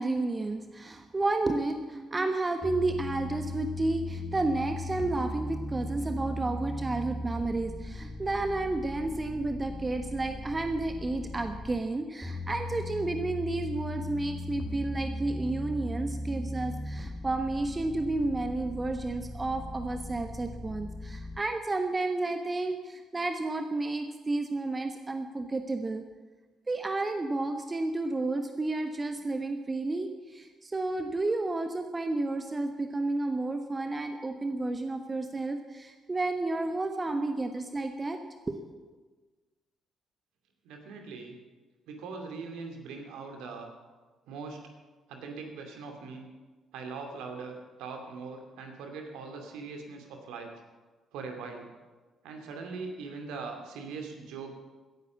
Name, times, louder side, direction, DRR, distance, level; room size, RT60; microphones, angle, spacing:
voice 1, 0.0-26.0 26.7-38.6, right 2 dB, 25° right, 6 dB, 1.3 m, -31 dB
sound 1, 2.6-11.8 12.2-21.4, left 1 dB, 5° right, 3.2 m, -38 dB
voice 2, 40.6-41.4 41.9-43.7 44.3-44.6 45.1-46.3 46.7-50.5 51.1-51.7 52.2-54.6, right 4 dB, 65° right, 3 dB, 2.4 m, -41 dB
16.5 x 10.5 x 7.2 m, 1.3 s
figure-of-eight pair, 45°, 0 cm